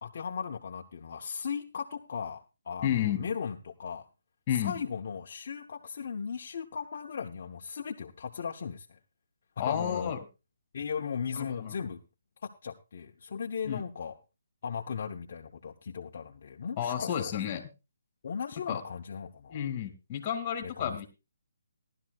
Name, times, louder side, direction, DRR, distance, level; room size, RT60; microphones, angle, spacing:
voice 1, 0.0-4.1 4.6-9.0 9.6-10.1 10.7-12.0 12.4-14.1 14.6-17.3 18.2-19.6 20.6-21.0, left 6 dB, 45° left, 1 dB, 0.9 m, -37 dB
voice 2, 2.8-3.2 4.5-4.7 9.6-10.2 11.3-11.9 13.6-13.8 16.8-17.6 18.7-18.8 19.5-21.1, left 10 dB, 20° left, 5 dB, 2.4 m, -31 dB
17.5 x 12.0 x 2.4 m, 0.28 s
hypercardioid pair, 165°, 0 cm